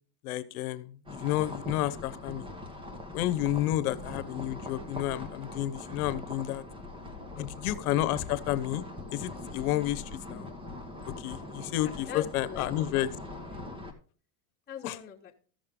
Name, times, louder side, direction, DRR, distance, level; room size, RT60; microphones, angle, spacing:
voice 1, 0.2-2.5 3.1-6.6 7.4-8.8 9.1-10.5 11.2-13.1 14.8-15.0, left 14 dB, 85° left, 14 dB, 1.0 m, -31 dB
sound 1, 1.1-13.9, left 2 dB, 10° right, 1.4 m, -42 dB
voice 2, 11.8-13.6 14.7-15.3, left 8 dB, 20° left, -3 dB, 1.5 m, -44 dB
14.0 x 6.5 x 3.7 m, 0.42 s
supercardioid pair, 130°, 43 cm